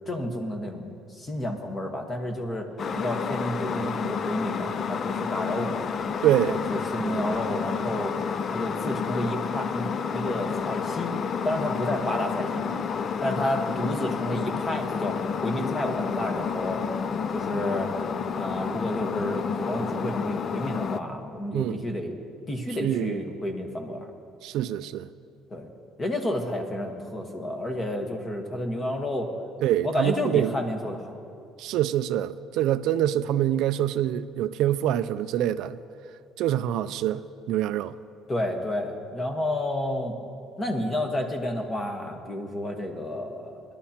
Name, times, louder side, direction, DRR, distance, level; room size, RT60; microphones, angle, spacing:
voice 1, 0.1-5.8 6.4-8.1 8.5-9.9 10.1-11.1 11.4-12.8 13.2-16.8 17.3-17.9 18.4-22.2 22.5-24.1 25.5-25.7 26.0-29.3 29.8-31.2 38.3-40.2 40.6-43.6, left 1 dB, 20° left, 1.2 m, -30 dB
sound 1, 2.8-21.0, left 6 dB, 35° left, 0.4 m, -30 dB
voice 2, 6.2-6.5 21.5-21.8 22.8-23.2 24.4-25.1 29.6-30.5 31.6-35.8 36.4-37.2 37.5-37.9, right 12 dB, 70° right, 0.3 m, -25 dB
21.0 x 11.5 x 2.9 m
cardioid pair, 145°, 0 cm